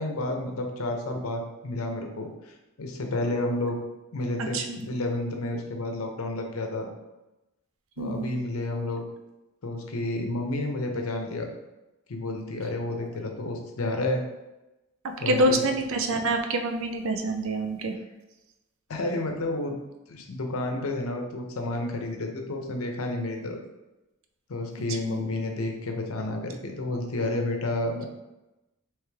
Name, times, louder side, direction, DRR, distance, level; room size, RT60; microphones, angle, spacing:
voice 1, 0.0-3.8 4.1-6.9 8.0-9.0 9.6-11.5 12.1-14.2 15.2-15.7 18.9-19.8 20.1-23.6 24.5-28.1, left 2 dB, 75° left, 3 dB, 0.6 m, -30 dB
voice 2, 4.5-4.9 8.0-8.3 15.3-17.9 25.0-25.2, right 1 dB, 65° right, 5 dB, 0.4 m, -26 dB
3.2 x 3.1 x 3.4 m, 1.0 s
head